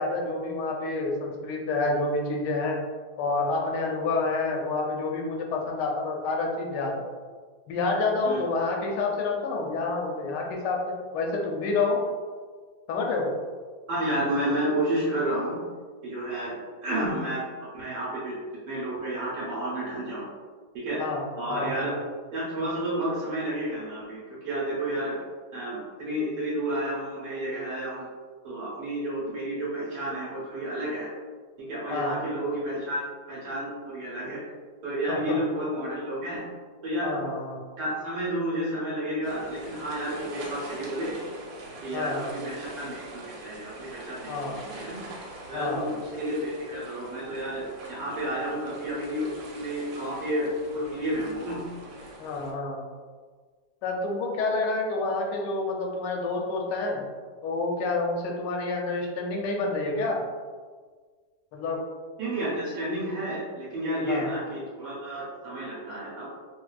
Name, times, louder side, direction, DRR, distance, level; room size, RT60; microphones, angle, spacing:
voice 1, 0.0-2.8 3.2-7.0 7.7-12.0 12.9-13.3 21.0-21.2 21.5-22.0 31.9-32.2 35.1-35.4 37.0-37.6 41.9-42.4 44.3-44.6 45.5-45.9 52.2-52.8 53.8-57.0 57.4-60.2 61.5-61.8 64.1-64.3, left 3 dB, 75° left, 0 dB, 1.2 m, -28 dB
voice 2, 13.9-15.6 16.0-16.5 16.8-18.3 18.7-20.3 20.7-21.0 21.4-21.9 22.3-25.2 25.5-28.1 28.4-31.1 31.6-34.4 34.8-36.4 36.8-37.2 37.8-41.1 41.8-45.0 45.5-49.3 49.6-51.6 62.2-66.3, right 1 dB, 70° right, -7 dB, 1.4 m, -31 dB
sound 1, 39.2-52.5, right 2 dB, 90° right, 1.4 m, -44 dB
4.1 x 2.3 x 2.3 m, 1.5 s
omnidirectional pair, 2.0 m